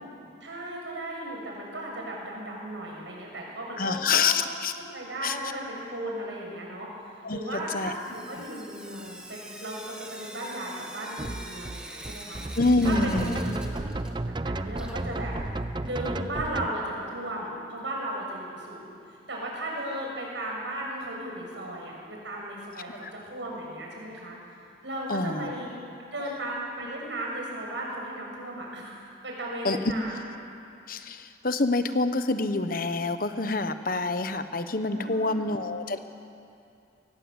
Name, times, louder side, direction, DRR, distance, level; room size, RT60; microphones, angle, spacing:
voice 1, 0.4-4.3 4.9-15.3 15.8-19.0 19.3-24.3 24.8-25.7 26.1-30.2 34.9-35.4, right 1 dB, 75° right, -2 dB, 6.8 m, -36 dB
voice 2, 3.8-4.8 5.2-5.4 7.2-7.9 12.6-13.4 22.9-23.1 25.1-25.5 29.6-29.8 30.9-36.0, left 3 dB, 50° left, 10 dB, 1.1 m, -27 dB
Sink (filling or washing) / Drip, 7.6-14.4 14.7-16.6 17.8-17.9 18.2-18.3 18.5-18.6 21.5-21.6 22.1-22.2 22.8-22.9 23.5-23.6 24.2-24.3 25.1-25.2, right 1 dB, 5° right, 1.6 m, -46 dB
sound 1, 11.2-16.7, right 2 dB, 25° right, 0.5 m, -33 dB
23.5 x 19.0 x 8.1 m, 2.5 s
head